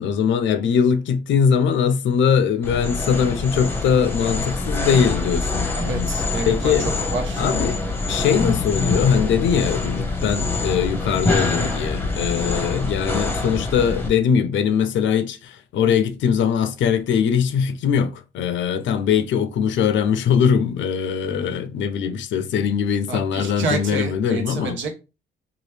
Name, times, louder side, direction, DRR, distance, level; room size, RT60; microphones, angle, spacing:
voice 1, 0.0-6.1 6.5-6.9 7.4-7.8 8.1-24.8, left 7 dB, 70° left, 0.5 m, -21 dB
sound 1, 2.6-14.1, left 3 dB, 10° left, 0.8 m, -25 dB
voice 2, 5.7-7.7 23.1-24.9, right 3 dB, 75° right, 0.9 m, -29 dB
2.9 x 2.3 x 3.2 m
cardioid pair, 90°, 20 cm